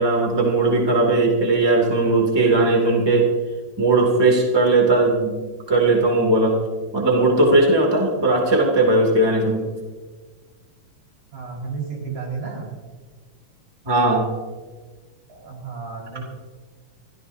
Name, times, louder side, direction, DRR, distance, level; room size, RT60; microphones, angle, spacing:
voice 1, 0.0-3.3 3.8-5.4 5.7-6.6 6.9-9.6 13.8-14.3, right 2 dB, 10° right, 0 dB, 2.4 m, -18 dB
voice 2, 8.1-8.4 11.3-12.7 15.3-16.2, right 5 dB, 80° right, -3 dB, 6.2 m, -32 dB
28.5 x 14.5 x 2.8 m, 1.4 s
omnidirectional pair, 3.3 m